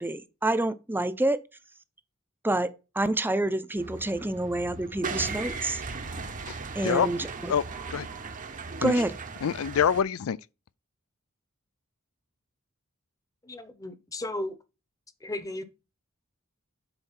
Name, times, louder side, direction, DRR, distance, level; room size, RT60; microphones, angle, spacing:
voice 1, 0.0-1.4 2.4-5.8 6.7-7.5 8.8-9.1, right 1 dB, 10° right, 0.6 m, -28 dB
sound 1, 3.8-10.0, right 4 dB, 40° right, 0.9 m, -37 dB
voice 2, 9.4-10.4, left 7 dB, 75° left, 0.4 m, -25 dB
voice 3, 13.4-14.6 15.2-15.6, left 1 dB, 15° left, 0.9 m, -35 dB
8.0 x 4.3 x 5.7 m
head